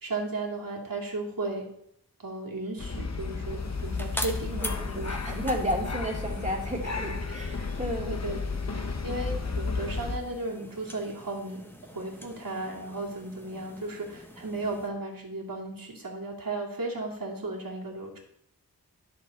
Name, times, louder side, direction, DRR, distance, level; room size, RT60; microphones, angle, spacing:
voice 1, 0.0-1.7 2.2-5.4 7.3-7.4 8.1-8.4 8.7-18.2, right 2 dB, 60° right, -2 dB, 2.5 m, -35 dB
sound 1, 2.8-10.2, left 4 dB, 45° left, 1.0 m, -33 dB
sound 2, 3.2-14.9, equal, 5° left, 1.3 m, -44 dB
voice 2, 4.6-8.2, equal, 20° right, -1 dB, 2.3 m, -32 dB
11.0 x 6.9 x 4.0 m, 0.72 s
wide cardioid pair, 60°, 39 cm